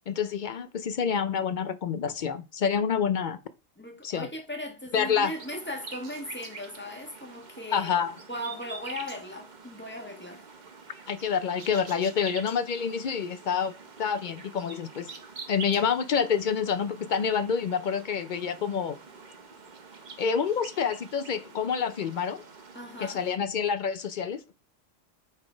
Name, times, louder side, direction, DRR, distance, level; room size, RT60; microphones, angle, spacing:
voice 1, 0.1-3.4 4.0-4.3 4.9-5.3 7.7-8.1 11.1-13.7 14.0-15.1 15.5-19.0 20.2-22.4 23.0-24.4, left 7 dB, 55° left, 0.5 m, -27 dB
voice 2, 3.8-7.9 8.3-10.4 22.7-23.2, left 1 dB, 10° left, 1.3 m, -38 dB
sound 1, 5.1-23.4, right 4 dB, 40° right, 1.0 m, -46 dB
8.1 x 3.9 x 5.0 m
omnidirectional pair, 1.3 m